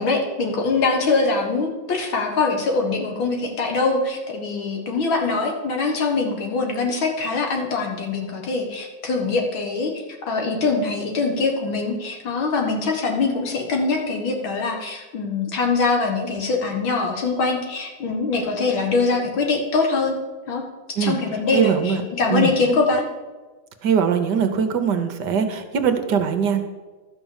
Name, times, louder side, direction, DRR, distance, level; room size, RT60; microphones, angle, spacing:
voice 1, 0.0-20.2 20.5-20.6 20.9-23.0, left 3 dB, 80° left, 2 dB, 2.4 m, -23 dB
voice 2, 21.5-22.0 22.3-22.5 23.8-26.6, right 6 dB, 65° right, 8 dB, 1.4 m, -21 dB
12.0 x 6.1 x 7.2 m, 1.3 s
omnidirectional pair, 2.1 m